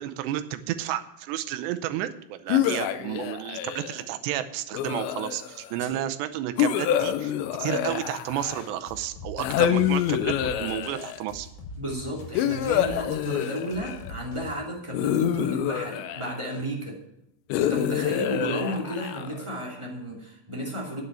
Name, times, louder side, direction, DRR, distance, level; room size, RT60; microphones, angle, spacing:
voice 1, 0.0-7.3 7.6-11.5, right 12 dB, 80° right, 11 dB, 2.8 m, -31 dB
sound 1, 2.5-4.0 4.7-5.7 6.6-8.8 9.4-11.2 12.4-14.1 14.9-16.6 17.5-19.5, left 10 dB, 85° left, 3.0 m, -27 dB
sound 2, 8.3-14.5, left 2 dB, 65° left, 3.9 m, -43 dB
voice 2, 11.8-17.0 17.6-21.0, equal, 10° right, -2 dB, 1.3 m, -33 dB
9.6 x 8.1 x 8.7 m, 0.80 s
omnidirectional pair, 5.1 m